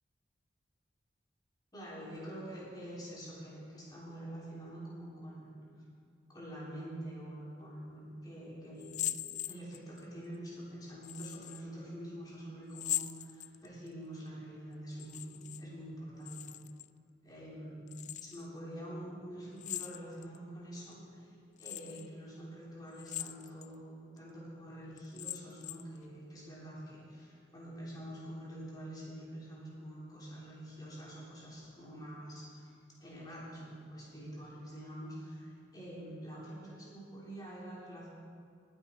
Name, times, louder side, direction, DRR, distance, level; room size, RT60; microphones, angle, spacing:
voice 1, 1.7-5.6 6.3-9.2 9.5-16.6 17.2-17.9 18.2-21.3 21.6-38.1, right 1 dB, 20° left, -6 dB, 3.5 m, -46 dB
sound 1, 8.8-10.0 11.0-11.6 12.7-13.9 14.9-15.6 15.9-16.9 17.9-18.5 19.6-20.4 20.9-21.0 21.6-22.1 22.9-23.7 24.2-24.3 25.0-26.0, left 13 dB, 40° left, 0.3 m, -40 dB
19.5 x 8.7 x 4.6 m, 2.3 s
head